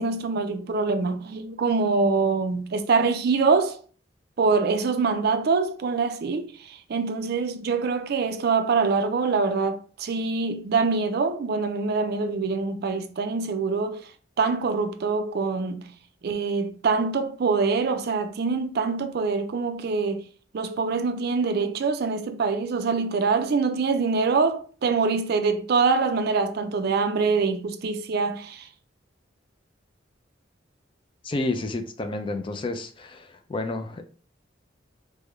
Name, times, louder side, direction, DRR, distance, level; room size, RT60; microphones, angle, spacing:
voice 1, 0.0-3.8 4.4-6.5 6.9-14.0 14.4-15.9 16.2-20.2 20.5-28.6, right 4 dB, 55° right, 0.4 m, -24 dB
voice 2, 31.2-34.0, left 2 dB, 25° left, 0.4 m, -30 dB
3.6 x 2.1 x 3.1 m
head